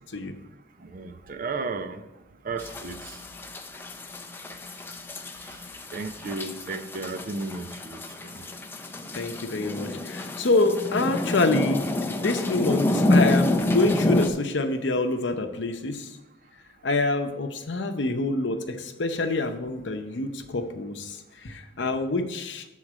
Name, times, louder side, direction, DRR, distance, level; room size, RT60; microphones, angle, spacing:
voice 1, 0.8-2.0 2.4-3.2 5.4-5.6 5.9-8.3, right 3 dB, 45° right, 8 dB, 0.5 m, -34 dB
sound 1, 2.6-14.3, left 1 dB, 10° left, 0.4 m, -28 dB
voice 2, 9.1-11.8 12.2-16.1 16.8-22.7, left 2 dB, 65° left, 6 dB, 0.7 m, -26 dB
7.5 x 3.8 x 6.0 m, 1.0 s
head